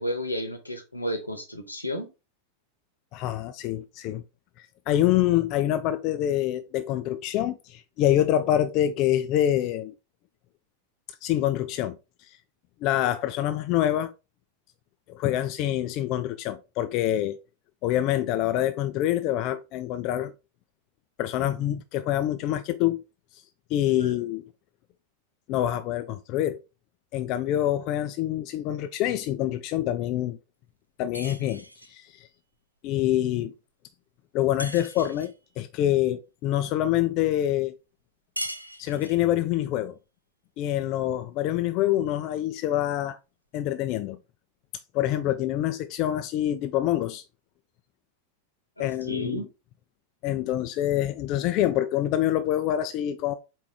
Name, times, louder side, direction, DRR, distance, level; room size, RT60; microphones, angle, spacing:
voice 1, 0.0-2.1 23.9-24.1 48.8-49.5, equal, 85° left, 1.0 m, -32 dB
voice 2, 3.1-4.2 4.6-9.9 11.2-12.4 12.8-14.1 15.1-17.4 17.8-20.3 21.2-23.0 23.3-23.4 23.7-24.4 25.5-26.6 27.1-30.4 31.0-32.3 32.8-33.5 34.3-37.7 38.8-40.0 40.6-43.2 43.5-44.2 44.9-47.2 48.8-49.5 50.2-53.3, left 12 dB, 40° left, 0.3 m, -26 dB
sound 1, 31.1-32.0 34.6-35.4 38.4-39.3, right 1 dB, 85° right, 0.4 m, -38 dB
4.7 x 3.2 x 3.3 m
figure-of-eight pair, 90°, 0 cm